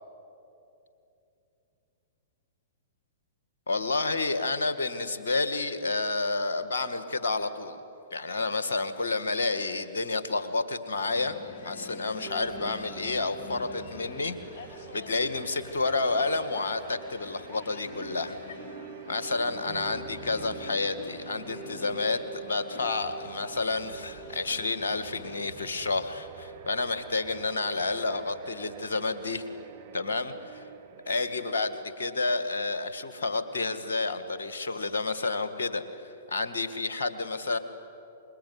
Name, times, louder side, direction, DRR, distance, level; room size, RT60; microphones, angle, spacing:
voice 1, 3.7-7.8 8.1-14.4 14.9-18.4 19.1-29.4 29.9-30.6 31.1-35.8 36.3-37.6, left 3 dB, 75° left, 10 dB, 2.0 m, -30 dB
sound 1, 11.1-25.5, left 4 dB, 55° left, 2.7 m, -46 dB
sound 2, 12.2-31.7, right 8 dB, 50° right, 1.1 m, -47 dB
25.5 x 21.5 x 9.5 m, 2.8 s
hypercardioid pair, 115°, 0 cm